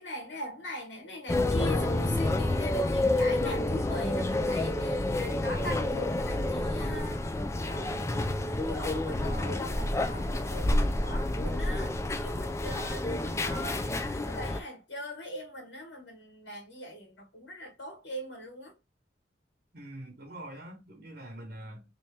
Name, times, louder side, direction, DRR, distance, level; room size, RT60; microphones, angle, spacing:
voice 1, 0.0-7.2 7.6-8.0 8.5-13.9 14.2-18.7, equal, 80° left, 1.4 m, -41 dB
sound 1, 1.3-14.6, left 1 dB, 15° left, 0.3 m, -29 dB
voice 2, 19.7-21.8, right 1 dB, 55° right, 1.1 m, -44 dB
3.2 x 2.8 x 3.3 m
head